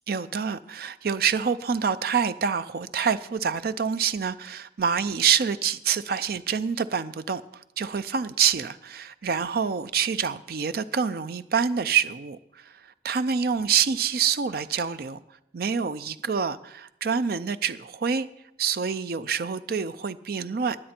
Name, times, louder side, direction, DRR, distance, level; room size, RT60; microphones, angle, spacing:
voice 1, 0.1-15.2 15.5-18.3 18.6-20.8, right 6 dB, 55° right, 0.5 m, -26 dB
20.5 x 7.7 x 4.4 m
head